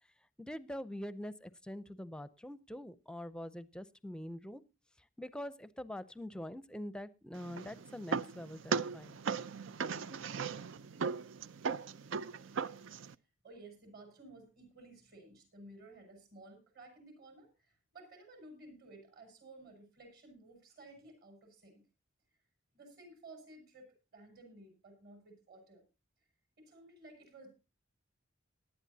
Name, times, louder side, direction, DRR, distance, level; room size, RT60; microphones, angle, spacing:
voice 1, 0.4-4.6 5.2-9.2, left 1 dB, 5° left, 14 dB, 0.6 m, -44 dB
sound 1, 7.3-13.1, right 5 dB, 75° right, 0.5 m, -38 dB
voice 2, 13.4-21.8 22.7-25.8 26.6-27.6, right 2 dB, 55° right, 4 dB, 6.1 m, -55 dB
18.5 x 11.0 x 2.8 m, 0.28 s
head